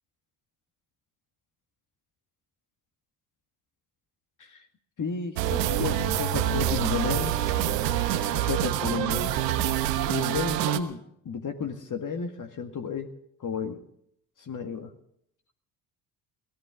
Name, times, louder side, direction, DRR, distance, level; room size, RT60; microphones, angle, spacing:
voice 1, 5.0-7.4 8.3-9.3 10.1-11.0 11.3-13.1 13.4-13.8 14.4-14.9, left 5 dB, 40° left, 6 dB, 2.0 m, -32 dB
sound 1, 5.4-10.8, right 11 dB, 85° right, 1.2 m, -26 dB
23.0 x 16.5 x 3.8 m, 0.70 s
hypercardioid pair, 55°, 48 cm